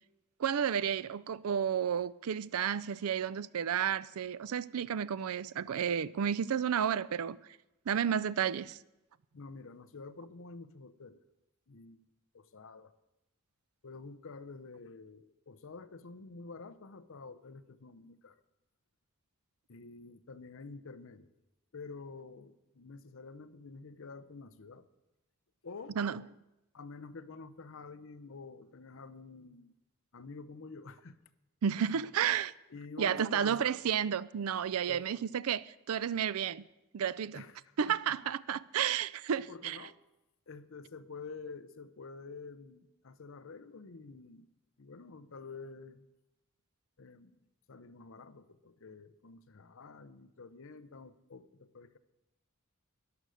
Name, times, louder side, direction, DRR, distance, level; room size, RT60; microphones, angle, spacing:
voice 1, 0.4-7.4 7.9-8.8 26.0-26.2 31.6-32.5 33.0-36.6 36.9-37.4 37.8-39.8, right 8 dB, 70° right, 0.4 m, -32 dB
voice 2, 9.3-11.2 11.7-12.0 12.3-12.9 13.8-18.4 19.7-21.3 21.7-24.9 25.6-26.0 26.7-29.7 30.1-31.2 31.8-31.9 32.7-33.8 34.9-35.1 37.3-38.3 39.5-40.0 40.5-44.5 44.8-46.1 47.0-47.4 47.7-52.0, left 4 dB, 60° left, 0.7 m, -48 dB
13.0 x 10.5 x 6.4 m
head